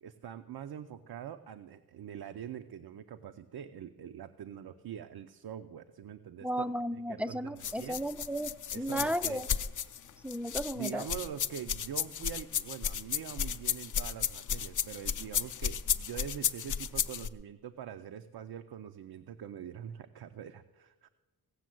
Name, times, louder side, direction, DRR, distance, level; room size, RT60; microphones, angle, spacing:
voice 1, 0.0-6.7 6.9-8.0 8.7-9.4 10.7-21.1, right 9 dB, 75° right, 8 dB, 0.6 m, -44 dB
voice 2, 6.4-9.4 10.2-11.0, equal, 5° right, 12 dB, 0.4 m, -34 dB
sound 1, 7.6-17.3, left 8 dB, 50° left, 0.6 m, -33 dB
17.0 x 7.3 x 7.7 m, 1.2 s
wide cardioid pair, 130°, 38 cm